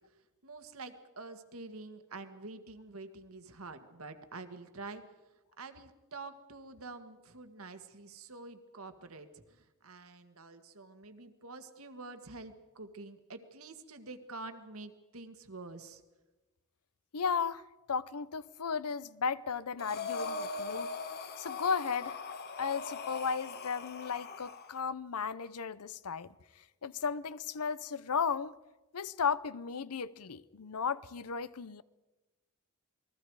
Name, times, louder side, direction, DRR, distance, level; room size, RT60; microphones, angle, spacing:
voice 1, 0.4-5.0 5.6-16.0, right 3 dB, 75° right, 1.7 m, -47 dB
voice 2, 17.1-17.6 17.9-20.9 21.4-22.2 22.6-26.3 26.8-28.5 28.9-31.8, left 6 dB, 90° left, 0.7 m, -35 dB
Breathing, 19.8-24.7, left 4 dB, 45° left, 1.2 m, -40 dB
28.5 x 21.0 x 4.8 m
head